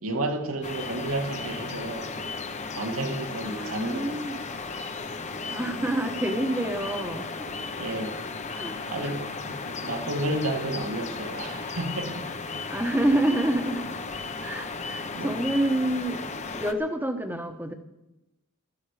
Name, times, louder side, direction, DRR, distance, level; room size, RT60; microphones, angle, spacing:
voice 1, 0.0-2.2 2.7-4.2 5.6-5.7 7.8-8.2 8.9-12.3 15.1-15.3, right 1 dB, 70° right, 4 dB, 2.0 m, -31 dB
sound 1, 0.6-16.7, left 4 dB, 30° left, 0.9 m, -35 dB
voice 2, 3.4-4.4 5.5-7.3 8.5-9.2 12.7-14.0 14.4-16.2 16.5-17.7, right 1 dB, 10° right, 6 dB, 1.2 m, -28 dB
15.0 x 13.5 x 4.9 m, 0.93 s
head